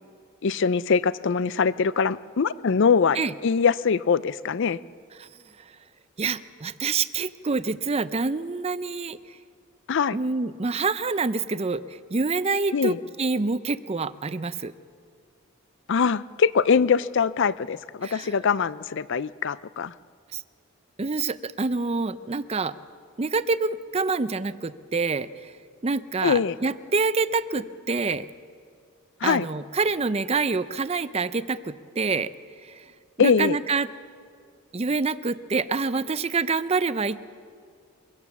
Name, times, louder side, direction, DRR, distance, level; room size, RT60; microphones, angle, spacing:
voice 1, 0.4-3.2 3.4-4.8 9.9-10.2 12.7-13.0 15.9-19.9 26.2-26.6 29.2-29.5 33.2-33.6, left 6 dB, 55° left, 17 dB, 0.5 m, -22 dB
voice 2, 6.2-9.2 10.1-14.7 18.0-18.3 20.3-20.4 21.0-22.7 23.2-25.5 25.8-28.3 29.2-32.3 32.6-32.8 33.2-33.9 34.7-37.3, right 4 dB, 30° right, 14 dB, 0.5 m, -27 dB
23.5 x 16.5 x 7.2 m, 2.1 s
head